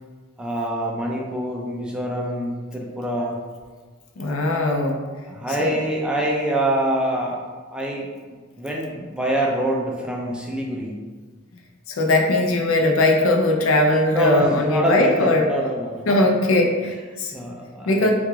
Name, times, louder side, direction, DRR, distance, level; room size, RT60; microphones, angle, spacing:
voice 1, 0.4-3.4 5.1-8.1 8.6-11.0 14.1-15.1 15.4-16.3 17.3-18.1, right 1 dB, 5° right, -2 dB, 0.3 m, -25 dB
voice 2, 4.2-5.0 5.5-5.8 11.9-15.5 16.1-17.3 17.9-18.1, left 2 dB, 75° left, 2 dB, 0.5 m, -19 dB
3.5 x 2.3 x 3.0 m, 1.5 s
head